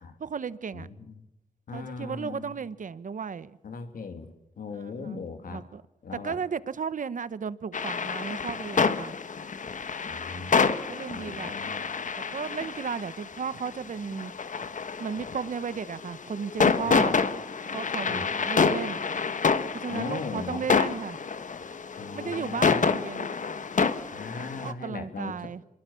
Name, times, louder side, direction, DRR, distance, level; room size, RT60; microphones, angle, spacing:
voice 1, 0.2-0.9 1.7-3.6 4.7-5.2 5.5-5.8 6.2-9.1 10.3-10.6 10.9-11.6 12.2-14.3 15.0-17.2 17.7-19.0 19.7-21.2 22.1-23.3 24.6-25.6, right 6 dB, 65° right, 1.1 m, -34 dB
voice 2, 0.7-1.1 1.7-2.6 3.6-5.6 6.0-6.4 10.1-10.5 11.1-11.9 16.8-17.2 18.0-18.3 19.9-20.7 22.0-22.9 24.1-25.3, left 4 dB, 85° left, 2.7 m, -38 dB
sound 1, 7.7-24.7, left 5 dB, 65° left, 1.5 m, -28 dB
26.0 x 23.0 x 7.1 m
cardioid pair, 75°, 14 cm